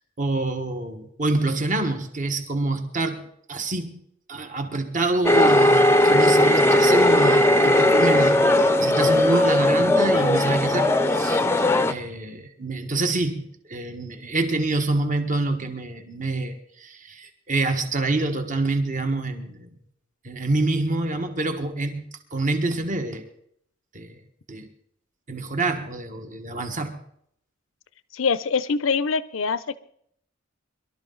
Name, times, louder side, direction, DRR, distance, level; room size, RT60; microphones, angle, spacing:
voice 1, 0.2-3.2 3.5-4.0 4.3-11.4 11.9-19.7 20.2-22.0 22.3-23.3 23.9-24.2 24.5-24.7 25.3-27.0, right 2 dB, 40° right, 7 dB, 1.4 m, -26 dB
sound 1, 5.2-11.9, left 1 dB, 10° left, 0.6 m, -18 dB
voice 2, 28.1-29.8, left 5 dB, 75° left, 16 dB, 0.6 m, -24 dB
23.0 x 12.0 x 3.9 m, 0.69 s
head